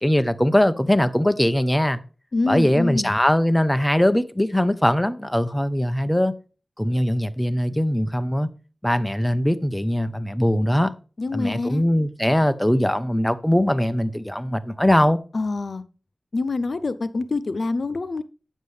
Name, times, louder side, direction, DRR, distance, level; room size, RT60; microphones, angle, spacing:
voice 1, 0.0-2.0 2.5-6.3 6.8-8.5 8.8-10.9 11.3-15.2, left 1 dB, 10° left, 0.8 m, -21 dB
voice 2, 2.3-3.1 11.2-11.8 15.3-15.8 16.3-18.2, left 3 dB, 65° left, 0.6 m, -25 dB
9.4 x 7.5 x 3.3 m
wide cardioid pair, 60°, 0 cm